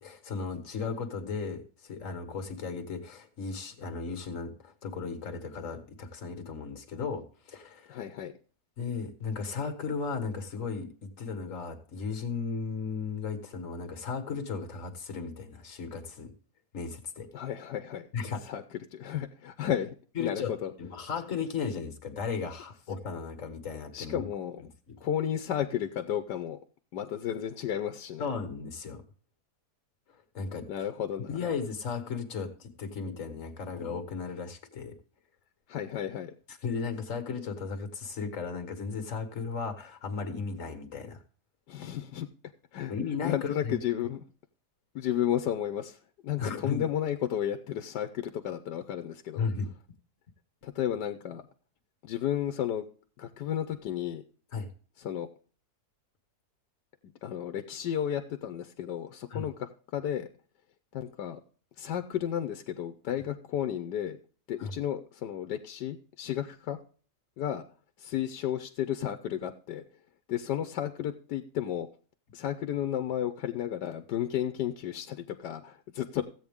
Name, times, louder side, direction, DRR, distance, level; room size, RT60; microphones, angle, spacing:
voice 1, 0.0-8.0 8.8-16.3 16.7-17.3 18.1-18.4 20.2-20.5 20.8-24.3 24.9-25.0 28.2-29.0 30.3-30.7 31.3-34.9 36.5-41.2 42.9-43.8 46.4-46.8 49.4-49.7 54.5-54.7 59.3-59.5 64.6-64.7, left 5 dB, 50° left, 7 dB, 1.9 m, -35 dB
voice 2, 7.9-8.3 17.3-18.1 18.4-19.9 20.2-20.7 23.9-24.6 25.0-26.6 26.9-28.3 30.7-31.5 35.7-36.3 41.7-42.3 42.7-42.9 43.2-44.2 44.9-49.4 50.6-51.4 52.0-52.8 53.2-54.2 55.0-55.3 57.0-60.3 60.9-61.4 61.8-64.2 64.5-66.8 67.4-67.6 68.0-69.8 70.3-71.9 72.3-76.2, left 10 dB, 85° left, 7 dB, 1.4 m, -33 dB
15.0 x 8.5 x 3.6 m, 0.42 s
omnidirectional pair, 1.8 m